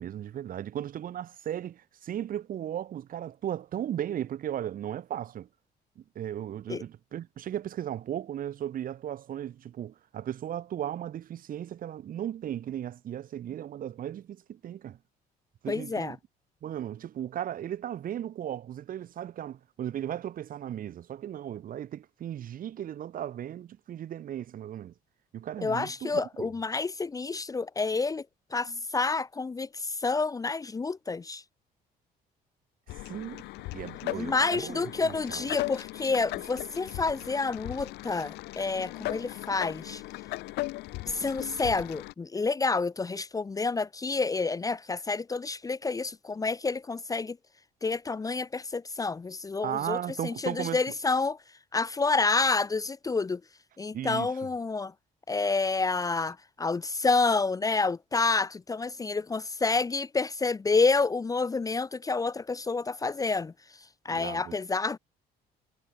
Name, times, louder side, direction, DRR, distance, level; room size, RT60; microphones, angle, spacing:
voice 1, 0.0-5.5 6.0-15.0 15.6-16.2 16.6-24.9 25.3-26.5 28.7-28.8 33.1-33.4 33.7-35.4 49.6-50.8 53.9-54.3 64.1-64.6, right 10 dB, 55° right, 2.5 m, -36 dB
voice 2, 15.7-16.2 25.6-28.2 28.5-31.4 34.1-40.0 41.1-47.4 47.8-50.0 50.2-51.4 51.7-53.4 53.8-54.9 55.3-63.5 64.0-65.0, left 4 dB, 20° left, 0.8 m, -29 dB
sound 1, 32.9-42.1, left 20 dB, 80° left, 0.6 m, -38 dB
cardioid pair, 110°, 17 cm